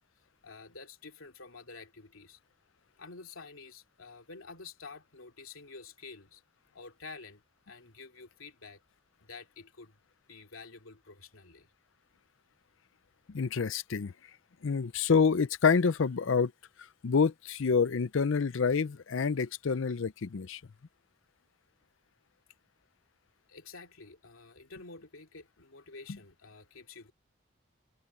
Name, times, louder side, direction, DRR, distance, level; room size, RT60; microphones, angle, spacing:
voice 1, 0.4-2.4 3.0-6.4 6.7-7.4 7.7-8.8 9.2-10.0 10.3-11.7 23.5-27.1, left 4 dB, 85° left, 2.8 m, -49 dB
voice 2, 13.3-14.1 14.6-16.5 17.0-20.6, left 5 dB, 70° left, 0.5 m, -27 dB
head